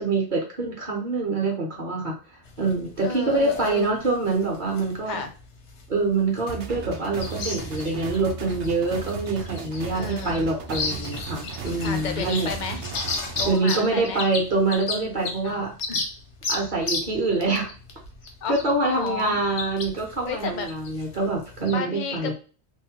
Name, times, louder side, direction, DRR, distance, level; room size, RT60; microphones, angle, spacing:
voice 1, 0.0-5.2 5.9-12.5 13.5-15.7 16.5-17.7 18.5-22.3, right 3 dB, 50° right, 0 dB, 0.8 m, -25 dB
sound 1, 2.5-21.7, left 3 dB, 90° left, 1.0 m, -35 dB
voice 2, 3.0-3.9 5.1-5.3 9.9-10.5 11.8-12.8 13.4-14.2 15.4-16.1 18.4-19.4 20.2-20.7 21.7-22.3, left 5 dB, 60° left, 7 dB, 0.5 m, -32 dB
sound 2, 6.5-13.5, right 5 dB, 85° right, 0.9 m, -36 dB
3.1 x 2.1 x 2.8 m, 0.36 s
omnidirectional pair, 1.1 m